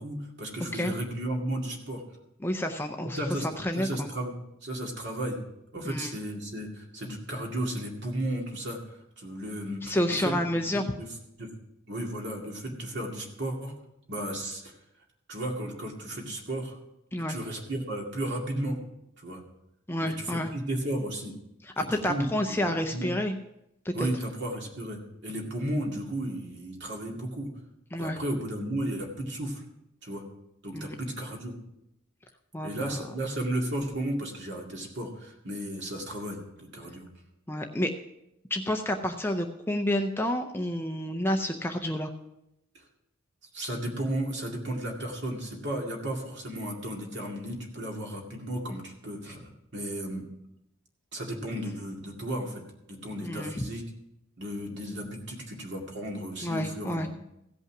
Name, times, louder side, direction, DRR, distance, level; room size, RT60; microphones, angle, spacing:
voice 1, 0.0-2.0 3.2-3.5 3.8-4.3 4.6-5.4 5.7-11.1 11.4-11.5 11.9-13.7 14.1-14.8 15.3-16.8 17.3-18.8 19.2-19.4 20.0-21.3 21.8-22.3 22.6-23.1 23.9-27.5 28.0-29.6 30.0-30.2 30.6-31.5 32.6-37.1 42.7-42.8 43.5-50.3 51.1-52.6 52.9-53.8 54.4-57.1, right 1 dB, 55° right, 1 dB, 2.2 m, -34 dB
voice 2, 2.4-4.1 5.8-6.1 9.8-10.8 17.1-17.4 19.9-20.5 21.6-23.4 23.8-24.1 27.9-28.2 30.7-31.0 32.5-33.0 37.5-37.9 38.5-42.1 53.2-53.6 56.4-57.1, left 1 dB, 10° left, 5 dB, 0.5 m, -29 dB
16.0 x 5.5 x 5.9 m, 0.84 s
head